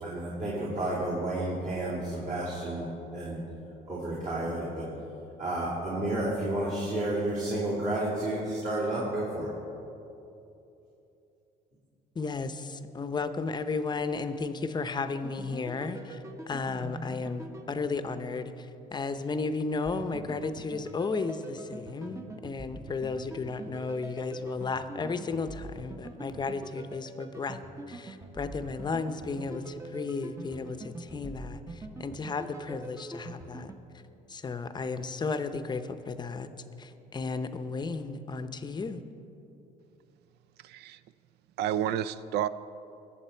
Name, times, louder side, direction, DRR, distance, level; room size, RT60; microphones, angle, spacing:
voice 1, 0.0-3.4 3.9-4.9 5.4-9.5, right 1 dB, 50° right, -8 dB, 3.4 m, -31 dB
voice 2, 12.1-27.6 27.9-33.7 34.3-36.5 36.8-39.0, left 4 dB, 25° left, 10 dB, 0.7 m, -34 dB
sound 1, 15.2-18.6 19.8-33.7, right 2 dB, 15° right, 0.8 m, -44 dB
voice 3, 40.6-41.0 41.6-42.5, right 10 dB, 75° right, 15 dB, 0.4 m, -30 dB
21.0 x 7.4 x 4.4 m, 2.9 s
cardioid pair, 110°, 17 cm